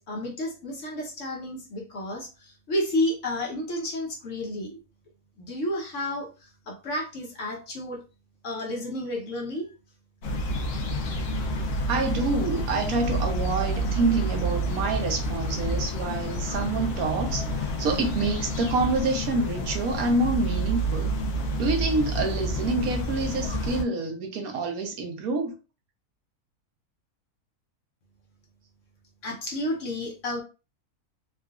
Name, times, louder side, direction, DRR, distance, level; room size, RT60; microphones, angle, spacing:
voice 1, 0.0-4.8 5.4-6.3 6.7-8.0 8.4-9.7 29.2-30.4, left 1 dB, 60° left, 1.1 m, -31 dB
sound 1, 10.2-23.8, right 1 dB, 85° left, 1.2 m, -29 dB
voice 2, 11.9-21.1 21.6-25.5, right 3 dB, 75° right, 1.2 m, -27 dB
3.8 x 2.3 x 2.3 m
omnidirectional pair, 1.5 m